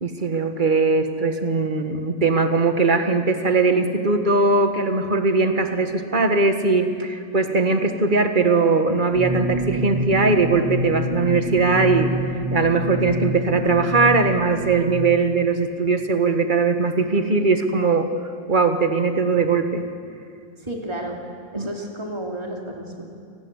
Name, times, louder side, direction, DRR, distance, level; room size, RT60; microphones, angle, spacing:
voice 1, 0.0-18.1 18.5-19.8 21.6-21.7, right 3 dB, 40° right, 6 dB, 1.8 m, -20 dB
sound 1, 9.1-14.9, equal, 50° left, 5.9 m, -26 dB
voice 2, 20.6-21.2 21.5-23.0, right 1 dB, 20° right, 0 dB, 2.8 m, -31 dB
29.0 x 19.5 x 8.2 m, 2.4 s
omnidirectional pair, 1.4 m